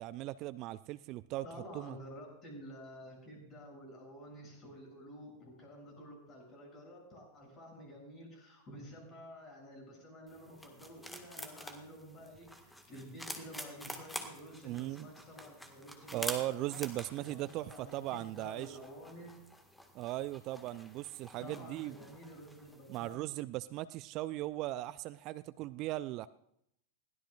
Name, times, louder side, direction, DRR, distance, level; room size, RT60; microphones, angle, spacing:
voice 1, 0.0-1.4 1.7-2.0 14.6-15.1 16.1-18.8 19.9-22.0 22.9-26.3, right 16 dB, 40° right, 16 dB, 0.4 m, -38 dB
voice 2, 1.4-16.8 17.2-19.3 21.4-23.2, equal, 25° left, 0 dB, 7.6 m, -51 dB
sound 1, 10.3-23.1, left 1 dB, 5° left, 1.8 m, -48 dB
21.5 x 16.5 x 2.5 m, 0.75 s
figure-of-eight pair, 90°, 0 cm